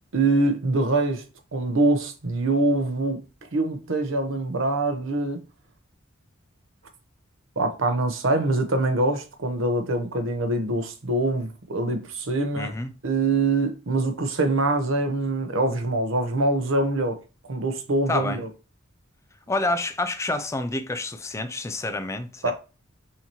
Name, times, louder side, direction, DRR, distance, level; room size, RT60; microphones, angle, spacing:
voice 1, 0.1-1.2 1.5-3.2 3.5-5.4 7.6-12.7 13.0-17.2 17.5-18.5 22.4-22.5, right 2 dB, 65° right, 0.9 m, -24 dB
voice 2, 12.5-12.9 18.1-18.4 19.5-22.5, left 2 dB, 15° left, 0.4 m, -28 dB
5.8 x 2.9 x 2.9 m
head